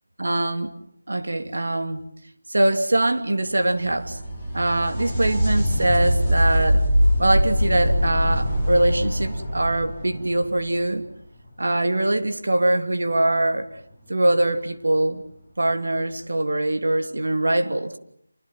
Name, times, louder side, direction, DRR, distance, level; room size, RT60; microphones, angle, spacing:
voice 1, 0.2-0.7 1.1-2.0 2.5-4.2 4.5-6.8 7.2-11.0 11.6-13.7 14.1-15.2 15.6-18.0, right 1 dB, 70° right, 3.0 m, -22 dB
sound 1, 3.6-11.2 14.5-14.6 15.7-15.8, equal, 10° right, 5.6 m, -23 dB
27.5 x 25.5 x 7.5 m
figure-of-eight pair, 180°, 0 cm